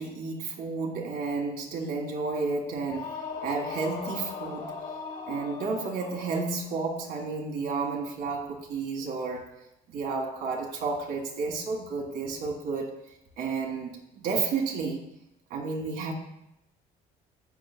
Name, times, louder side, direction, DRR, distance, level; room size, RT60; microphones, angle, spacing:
voice 1, 0.0-4.7 5.3-9.5 9.9-12.9 13.4-15.0 15.5-16.1, right 4 dB, 75° right, -1 dB, 1.8 m, -31 dB
sound 1, 2.8-6.8, left 5 dB, 65° left, 3.1 m, -39 dB
11.0 x 7.6 x 2.2 m, 0.83 s
cardioid pair, 110°, 17 cm